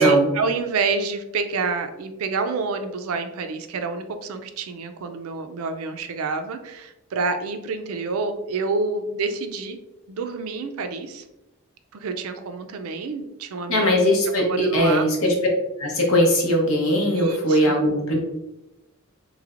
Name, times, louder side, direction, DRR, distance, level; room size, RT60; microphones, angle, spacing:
voice 1, 0.0-9.8 10.1-11.2 11.9-14.0 14.4-15.1 17.1-17.7, right 4 dB, 80° right, 8 dB, 0.4 m, -27 dB
voice 2, 13.7-15.3 15.8-18.2, equal, 75° left, 0 dB, 0.9 m, -20 dB
3.3 x 3.1 x 2.4 m, 0.94 s
head